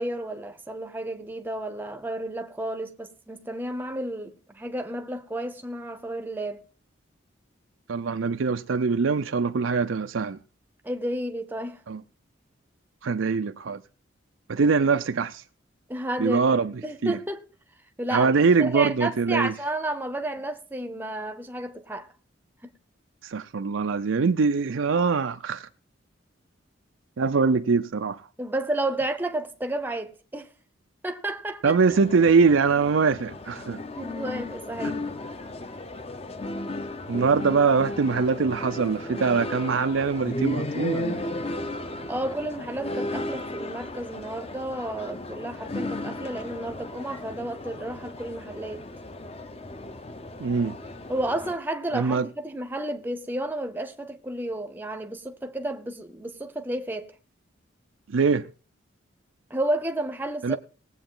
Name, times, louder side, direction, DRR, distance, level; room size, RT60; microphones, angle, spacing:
voice 1, 0.0-6.6 10.8-11.8 15.9-16.6 16.8-17.4 18.0-18.3 18.6-22.1 22.6-22.7 28.4-30.5 31.0-31.8 33.9-35.0 42.1-48.9 51.1-57.1 59.5-60.6, right 1 dB, 10° right, 0.7 m, -31 dB
voice 2, 7.9-10.4 11.9-12.0 13.0-13.8 14.5-15.4 16.2-16.7 17.0-17.2 18.1-19.5 23.2-25.7 27.2-28.3 31.6-33.8 37.1-41.3 50.4-50.8 51.9-52.3 58.1-58.5 60.4-60.6, right 5 dB, 80° right, 0.5 m, -23 dB
sound 1, 31.9-51.6, left 2 dB, 30° left, 0.8 m, -35 dB
18.5 x 7.9 x 3.8 m
head